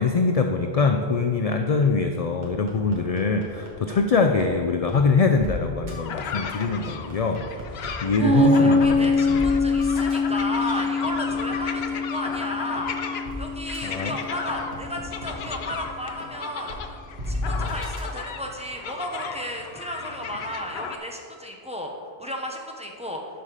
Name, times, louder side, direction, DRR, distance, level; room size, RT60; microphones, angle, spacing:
voice 1, 0.0-7.4 8.0-9.4 13.8-14.1, left 4 dB, 50° left, 5 dB, 0.4 m, -23 dB
sound 1, 2.4-4.0 4.4-4.5 4.9-5.0 5.4-5.5 5.9-6.0 6.4-7.9 8.3-8.4 8.8-8.9 9.3-11.8 12.3-12.4 12.8-12.9 13.2-13.4 13.7-13.8 14.2-15.8 16.2-16.3 16.7-16.8 17.2-18.0, left 1 dB, 45° right, 1.6 m, -33 dB
sound 2, 5.9-21.0, left 6 dB, 70° left, 0.9 m, -35 dB
voice 2, 7.8-13.0 13.4-16.7 17.3-21.9 22.2-23.2, equal, 5° right, 1 dB, 0.9 m, -34 dB
Piano, 8.2-15.4, left 2 dB, 75° right, 2.8 m, -24 dB
11.5 x 5.6 x 4.9 m, 2.3 s
omnidirectional pair, 1.1 m